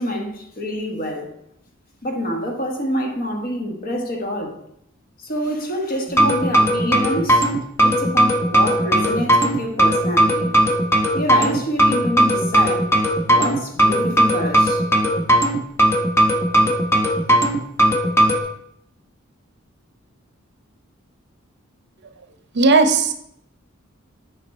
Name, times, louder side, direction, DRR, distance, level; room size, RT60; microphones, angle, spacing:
voice 1, 0.0-1.4 2.0-4.6 5.2-7.5 7.8-10.6 11.1-12.9 13.3-14.8, equal, 45° left, 1.4 m, -26 dB
sound 1, 6.1-18.4, right 1 dB, 10° left, 0.8 m, -17 dB
voice 2, 22.6-23.1, right 3 dB, 55° right, 0.7 m, -15 dB
8.2 x 5.1 x 4.2 m
head